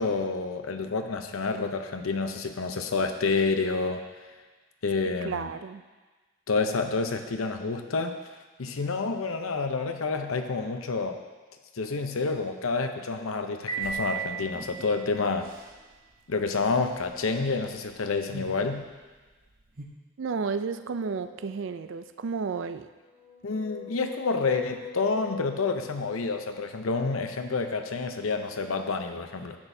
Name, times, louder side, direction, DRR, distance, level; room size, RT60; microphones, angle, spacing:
voice 1, 0.0-4.0 4.8-5.5 6.5-8.2 8.6-11.2 11.8-15.5 16.3-18.8 23.4-29.6, left 4 dB, 85° left, 6 dB, 0.7 m, -28 dB
voice 2, 5.2-5.8 20.2-22.9, right 5 dB, 65° right, 11 dB, 0.4 m, -32 dB
Piano, 13.7-15.6, right 5 dB, 25° left, 1.4 m, -35 dB
sound 1, 13.8-19.9, right 1 dB, 45° right, 0.8 m, -47 dB
sound 2, 20.5-22.1 22.9-26.8, left 7 dB, 60° left, 1.6 m, -45 dB
10.5 x 9.0 x 2.7 m, 1.3 s
head